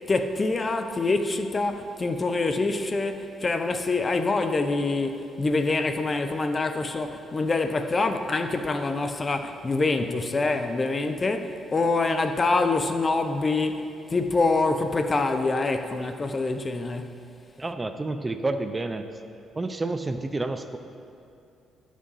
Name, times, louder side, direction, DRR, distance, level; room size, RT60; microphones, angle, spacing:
voice 1, 0.1-13.8 14.1-17.2, left 3 dB, 30° left, 0.6 m, -25 dB
voice 2, 17.6-19.1 19.6-20.8, right 2 dB, 20° right, 0.4 m, -29 dB
12.0 x 6.2 x 4.0 m
cardioid pair, 90°, 0 cm